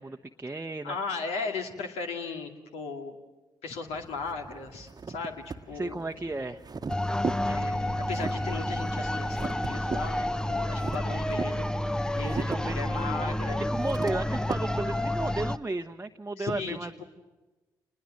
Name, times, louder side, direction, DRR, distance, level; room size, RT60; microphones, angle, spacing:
voice 1, 0.0-1.0 5.7-6.6 12.2-12.8 13.7-17.0, right 2 dB, 20° right, 4 dB, 1.0 m, -34 dB
voice 2, 0.8-3.2 3.6-6.0 7.5-11.7 12.2-13.6 16.4-17.0, left 4 dB, 70° left, 4 dB, 2.4 m, -37 dB
sound 1, 3.9-14.6, right 4 dB, 35° right, 1.2 m, -39 dB
sound 2, 6.9-15.6, left 1 dB, 5° left, 0.8 m, -30 dB
29.0 x 21.0 x 7.7 m, 1.1 s
hypercardioid pair, 40°, 11 cm